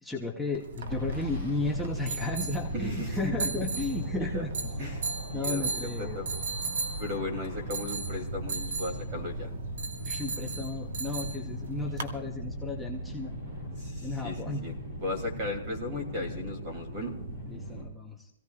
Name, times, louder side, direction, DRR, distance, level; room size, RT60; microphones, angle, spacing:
voice 1, 0.0-4.7 5.3-6.2 10.0-13.3 14.0-14.7 17.5-18.3, left 2 dB, ahead, 2 dB, 0.8 m, -34 dB
sound 1, 0.5-12.1, right 4 dB, 70° right, 1.6 m, -37 dB
sound 2, 0.8-17.8, equal, 50° right, 5.8 m, -38 dB
voice 2, 2.7-3.7 4.2-4.5 4.8-6.3 7.0-9.5 13.8-17.1, left 2 dB, 25° right, 4 dB, 2.7 m, -36 dB
26.0 x 16.0 x 2.4 m, 0.84 s
hypercardioid pair, 180°, 0 cm